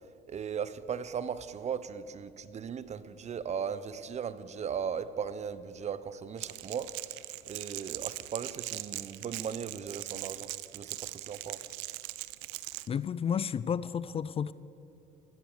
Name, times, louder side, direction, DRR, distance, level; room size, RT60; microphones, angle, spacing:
voice 1, 0.3-6.9 7.4-11.7, right 7 dB, 40° right, 0.8 m, -37 dB
Crackle, 6.4-12.9, right 20 dB, 90° right, 0.6 m, -40 dB
voice 2, 12.9-14.5, left 7 dB, 35° left, 0.4 m, -31 dB
16.0 x 13.0 x 6.8 m
supercardioid pair, 95°, 18 cm